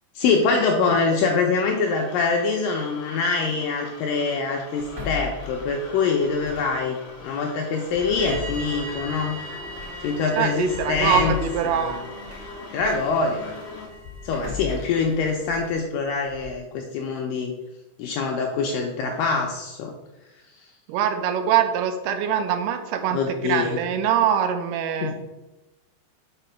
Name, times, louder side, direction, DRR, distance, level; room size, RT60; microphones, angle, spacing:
voice 1, 0.2-7.0 7.2-9.4 10.0-11.4 11.6-12.0 12.7-13.5 14.2-17.5 18.0-19.9 23.1-23.8 25.0-25.2, left 4 dB, 90° left, 1 dB, 1.9 m, -24 dB
sound 1, 1.5-13.9, left 3 dB, 55° left, 1.8 m, -42 dB
sound 2, 4.8-6.8 7.1-7.3 7.9-13.1 13.5-16.6, left 5 dB, 55° right, 0.3 m, -38 dB
sound 3, 8.2-15.8, right 1 dB, ahead, 0.9 m, -41 dB
voice 2, 10.4-12.0 20.9-25.1, right 8 dB, 80° right, 7 dB, 2.5 m, -23 dB
5.8 x 5.0 x 5.6 m, 1.0 s
omnidirectional pair, 4.8 m